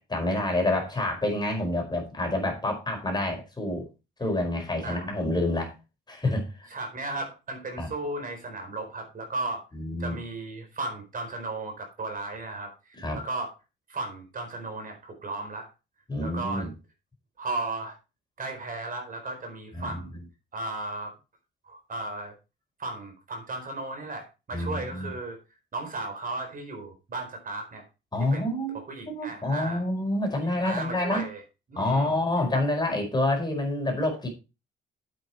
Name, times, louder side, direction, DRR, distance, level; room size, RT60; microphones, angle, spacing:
voice 1, 0.1-3.9 4.2-5.7 6.1-6.7 7.8-7.9 9.7-10.2 13.0-13.2 16.1-16.7 19.7-20.0 24.5-25.1 28.1-28.8 29.1-31.2 31.8-34.3, left 1 dB, 20° left, 2 dB, 5.0 m, -28 dB
voice 2, 4.8-5.1 6.7-9.6 10.0-13.5 13.9-15.7 16.2-16.7 17.4-18.0 18.4-20.2 20.5-21.1 21.6-22.3 22.8-25.4 25.7-27.8 28.3-29.8 30.6-31.4 31.7-32.1, right 2 dB, 45° right, 4 dB, 4.4 m, -35 dB
8.6 x 8.1 x 4.5 m, 0.28 s
cardioid pair, 90°, 20 cm